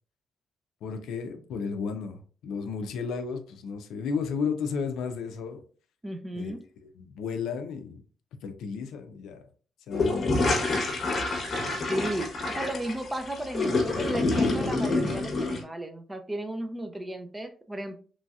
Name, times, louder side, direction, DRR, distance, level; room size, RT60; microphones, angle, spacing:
voice 1, 0.8-5.6 6.3-6.5 6.8-8.0 8.4-9.4 9.9-10.6, left 5 dB, 85° left, 0.4 m, -33 dB
voice 2, 6.0-6.6 11.9-18.0, right 1 dB, 15° right, 0.5 m, -34 dB
sound 1, 9.9-15.6, left 2 dB, 50° left, 0.8 m, -27 dB
3.0 x 2.7 x 2.3 m
cardioid pair, 90°, 0 cm